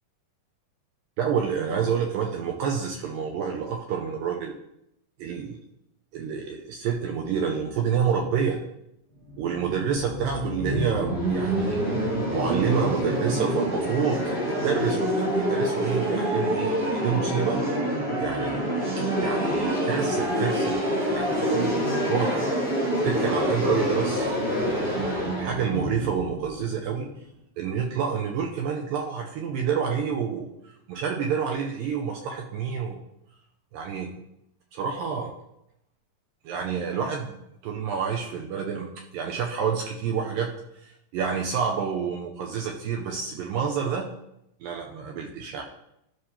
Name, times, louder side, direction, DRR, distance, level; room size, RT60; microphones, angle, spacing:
voice 1, 1.2-4.5 5.2-5.6 6.1-8.6 9.4-11.8 12.3-17.6 18.2-18.6 19.2-20.8 21.1-22.5 23.1-24.4 24.7-27.1 27.6-30.5 30.9-33.0 33.7-34.1 34.7-35.3 36.5-37.4 37.6-40.5 40.8-44.1 44.6-45.6, right 7 dB, 75° right, 1 dB, 2.2 m, -28 dB
sound 1, 9.3-27.1, equal, 40° right, 1.3 m, -27 dB
12.5 x 6.1 x 2.8 m, 0.80 s
omnidirectional pair, 4.5 m